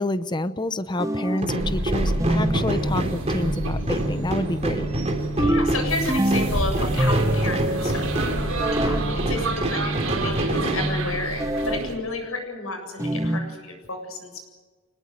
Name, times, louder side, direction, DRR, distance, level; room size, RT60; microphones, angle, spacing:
voice 1, 0.0-4.9, left 2 dB, 20° left, 12 dB, 0.8 m, -28 dB
sound 1, 1.0-1.5 2.2-2.7 5.4-6.6 7.0-7.6 8.6-9.1 11.4-11.9 13.0-13.5, right 1 dB, 15° right, 1.1 m, -24 dB
sound 2, 1.4-11.6, right 1 dB, 30° right, 3.3 m, -27 dB
Blackfriars - Announcement the station is closed, 1.6-11.9, right 1 dB, 65° right, 6.1 m, -29 dB
voice 2, 5.4-8.1 8.5-9.0 9.3-14.4, left 2 dB, 70° left, 4 dB, 7.5 m, -31 dB
24.5 x 20.0 x 9.1 m, 1.4 s
head